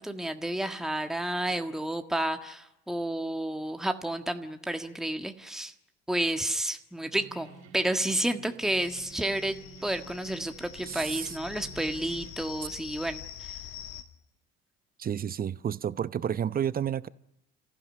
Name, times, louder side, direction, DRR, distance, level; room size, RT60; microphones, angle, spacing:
voice 1, 0.0-5.7 6.1-13.5, right 1 dB, ahead, 1.6 m, -31 dB
sound 1, 7.1-12.3, right 5 dB, 70° right, 3.1 m, -49 dB
sound 2, 8.6-14.0, left 10 dB, 55° left, 2.3 m, -45 dB
voice 2, 10.9-11.4 12.6-12.7 15.0-17.1, right 9 dB, 30° right, 0.8 m, -31 dB
30.0 x 15.5 x 9.9 m
figure-of-eight pair, 60°, 32 cm